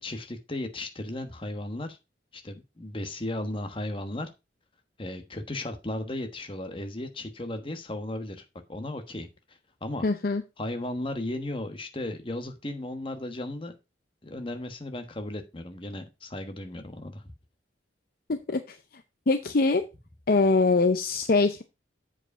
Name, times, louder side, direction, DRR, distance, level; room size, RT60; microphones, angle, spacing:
voice 1, 0.0-2.0 2.3-4.3 5.0-8.4 8.7-10.1 10.6-13.7 14.2-17.2, left 1 dB, 30° left, 6 dB, 1.2 m, -35 dB
voice 2, 10.0-10.4 18.3-18.8 19.3-19.8 20.3-21.6, left 3 dB, 50° left, 9 dB, 0.6 m, -23 dB
7.8 x 5.0 x 4.8 m, 0.26 s
head